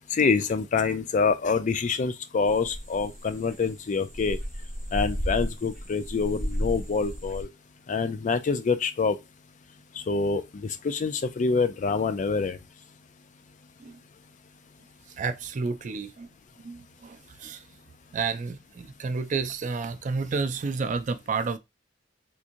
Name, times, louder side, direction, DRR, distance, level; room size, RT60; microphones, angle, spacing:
voice 1, 0.1-4.4 4.9-7.5 7.9-9.2 10.1-12.6, left 4 dB, 40° left, 0.4 m, -26 dB
sound 1, 2.5-7.4, equal, 5° right, 1.0 m, -33 dB
voice 2, 15.1-16.3 16.6-17.6 18.1-21.6, right 4 dB, 40° right, 0.4 m, -31 dB
3.5 x 2.9 x 2.5 m
head